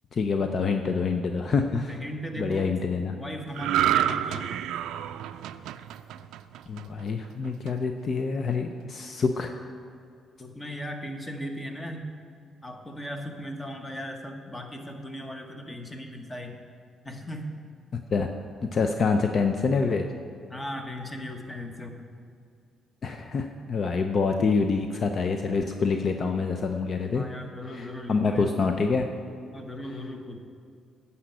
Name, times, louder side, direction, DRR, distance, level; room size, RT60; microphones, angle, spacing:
voice 1, 0.1-2.0 2.4-3.1 6.7-9.5 18.1-18.3 18.7-20.1 23.0-27.2 27.7-29.1, left 4 dB, 50° left, 5 dB, 0.6 m, -26 dB
voice 2, 1.9-2.7 3.1-4.6 10.4-12.1 12.6-16.6 17.0-17.5 20.5-22.1 27.1-28.5 29.5-30.4, equal, 15° left, 4 dB, 1.2 m, -37 dB
sound 1, 3.5-7.0 7.4-7.7, right 11 dB, 85° right, 0.3 m, -28 dB
10.0 x 5.7 x 7.8 m, 2.3 s
cardioid pair, 90°, 0 cm